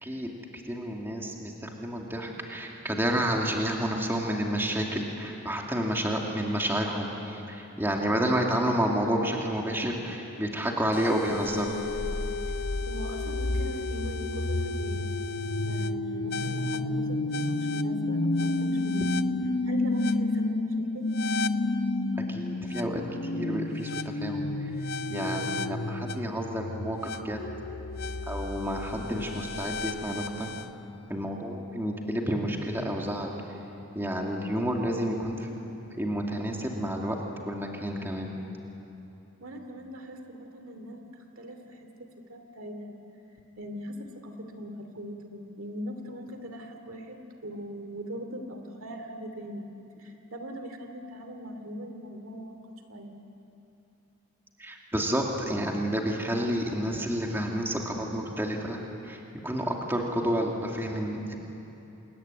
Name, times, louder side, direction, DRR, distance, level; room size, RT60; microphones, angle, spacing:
voice 1, 0.0-0.3 0.6-11.8 22.3-24.7 25.1-27.4 28.2-30.5 31.1-33.4 33.9-35.5 36.0-37.2 37.5-38.4 54.6-61.3, equal, 10° right, 0 dB, 2.4 m, -30 dB
sound 1, 10.9-30.7, left 2 dB, 50° left, 0.8 m, -30 dB
voice 2, 12.9-15.1 15.6-19.1 19.6-21.1 39.4-41.9 42.3-43.0 43.6-49.6 50.0-53.2, equal, 65° right, 5 dB, 2.6 m, -40 dB
27.5 x 22.0 x 9.7 m, 2.9 s
head